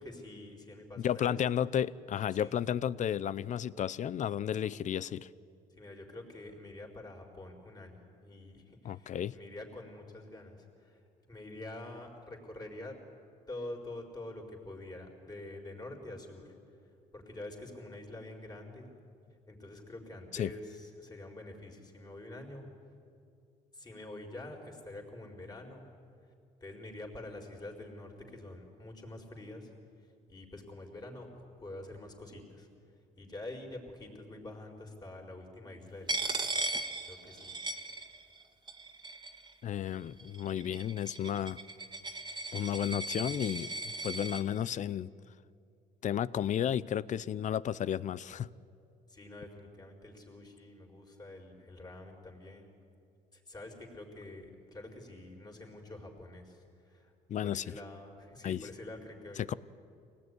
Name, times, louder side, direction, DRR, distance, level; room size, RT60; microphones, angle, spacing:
voice 1, 0.0-1.6 2.3-2.5 5.8-11.0 11.3-13.0 13.5-16.5 17.1-18.9 19.5-22.7 23.7-25.8 26.6-29.7 30.3-32.7 33.2-36.5 37.1-37.5 49.1-52.7 53.3-57.1 57.4-59.6, left 2 dB, 25° left, 1 dB, 4.5 m, -46 dB
voice 2, 1.0-5.3 8.8-9.3 20.3-20.5 39.6-41.6 42.5-43.7 44.0-45.1 46.0-48.5 57.3-57.7 58.4-58.6 59.4-59.5, left 10 dB, 45° left, 19 dB, 0.6 m, -32 dB
Coin (dropping), 36.1-38.4 38.7-39.5 40.2-44.4, right 2 dB, 25° right, 1.9 m, -37 dB
25.0 x 18.5 x 9.7 m, 2.5 s
cardioid pair, 110°, 17 cm